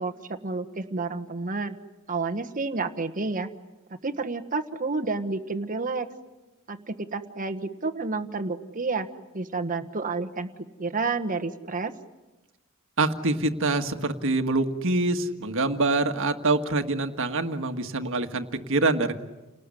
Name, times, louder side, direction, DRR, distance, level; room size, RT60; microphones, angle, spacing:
voice 1, 0.0-1.8 2.1-3.5 4.0-6.1 6.7-9.1 9.3-10.5 10.8-11.9, right 3 dB, 40° right, 7 dB, 1.3 m, -30 dB
voice 2, 13.0-19.1, right 2 dB, 65° right, 6 dB, 1.7 m, -25 dB
29.5 x 19.5 x 9.9 m, 1.1 s
head